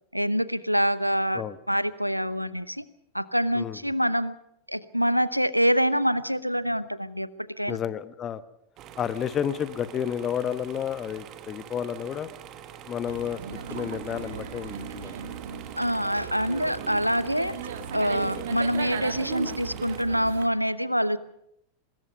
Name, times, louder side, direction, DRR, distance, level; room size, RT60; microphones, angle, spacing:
voice 1, 0.1-1.4 1.7-2.9 3.1-4.4 4.7-7.3 7.6-7.8 15.8-17.5 17.9-21.2, equal, 90° right, 17 dB, 0.8 m, -25 dB
voice 2, 7.7-8.4 9.0-12.3 12.9-15.1, left 9 dB, 25° left, 14 dB, 1.1 m, -31 dB
sound 1, 8.8-20.0, right 9 dB, 35° right, 1.6 m, -45 dB
sound 2, 13.1-20.5, right 7 dB, 60° right, 2.0 m, -36 dB
24.5 x 20.5 x 5.5 m, 0.77 s
figure-of-eight pair, 90°, 0 cm